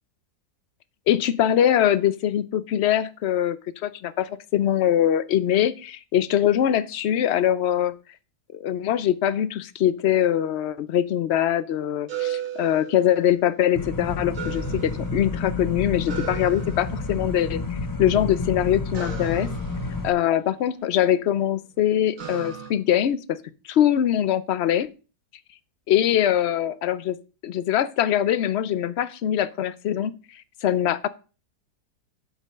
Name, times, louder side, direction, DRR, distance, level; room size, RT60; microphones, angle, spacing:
voice 1, 1.1-3.6 3.8-8.0 8.5-19.5 20.0-23.4 23.7-24.9 25.9-27.2 27.4-30.1 30.6-31.1, left 11 dB, 65° left, 16 dB, 0.7 m, -22 dB
sound 1, 12.1-13.5 14.3-15.5 16.1-17.3 18.9-21.0 22.2-22.7, right 9 dB, 55° right, 1.9 m, -36 dB
sound 2, 13.8-20.1, left 3 dB, 25° left, 0.4 m, -30 dB
7.8 x 5.3 x 6.4 m, 0.34 s
omnidirectional pair, 1.7 m